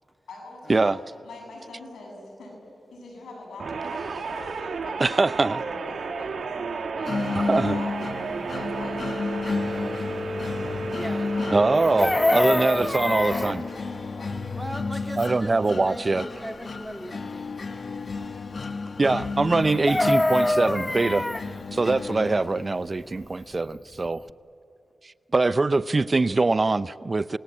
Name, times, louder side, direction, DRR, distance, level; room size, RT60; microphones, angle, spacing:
voice 1, 0.3-0.9 1.2-2.5 2.9-7.9 8.5-10.5 11.3-11.5 11.9-14.6 17.0-17.5, left 2 dB, 85° left, 7.2 m, -43 dB
sound 1, 3.6-14.0, right 3 dB, 70° right, 1.9 m, -32 dB
voice 2, 5.0-5.6 7.5-7.8 11.5-13.6 15.2-16.3 19.0-21.3 21.7-24.2 25.3-27.4, right 3 dB, 40° right, 0.5 m, -23 dB
sound 2, 7.1-23.0, left 4 dB, 60° left, 1.0 m, -33 dB
voice 3, 10.9-11.3 14.5-17.5, equal, 5° right, 2.1 m, -38 dB
Chicken rooster, 11.7-13.6 19.6-21.5 23.7-23.8 24.1-24.3, left 1 dB, 20° left, 0.7 m, -24 dB
28.0 x 19.0 x 8.5 m
cardioid pair, 55°, 0 cm